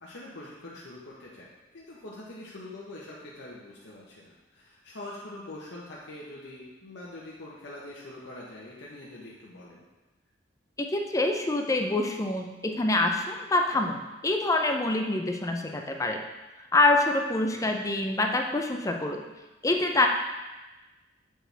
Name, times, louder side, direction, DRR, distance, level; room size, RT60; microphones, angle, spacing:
voice 1, 0.0-1.5 1.7-9.8 17.5-17.7, left 1 dB, 80° left, -5 dB, 0.9 m, -44 dB
voice 2, 10.8-16.2 16.7-19.2 19.6-20.1, left 2 dB, 15° left, 3 dB, 0.5 m, -26 dB
7.5 x 4.6 x 3.4 m, 1.1 s
head